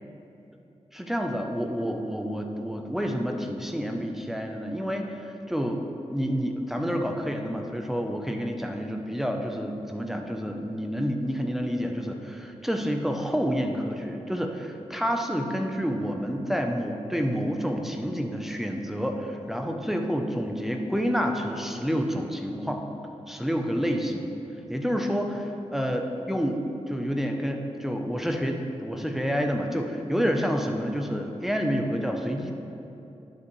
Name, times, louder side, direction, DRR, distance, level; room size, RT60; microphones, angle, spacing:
voice 1, 0.9-22.8 23.3-24.3 24.7-32.5, equal, 5° right, 3 dB, 0.7 m, -29 dB
10.5 x 7.2 x 3.2 m, 2.8 s
wide cardioid pair, 80°, 12 cm